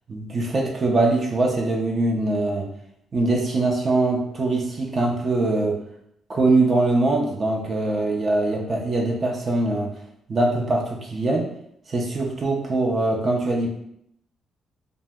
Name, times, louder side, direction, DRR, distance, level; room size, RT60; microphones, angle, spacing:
voice 1, 0.1-2.7 3.1-5.8 6.3-9.9 10.3-11.5 11.9-13.7, right 2 dB, 40° right, 0 dB, 0.5 m, -22 dB
2.7 x 2.0 x 3.4 m, 0.74 s
cardioid pair, 90°, 0 cm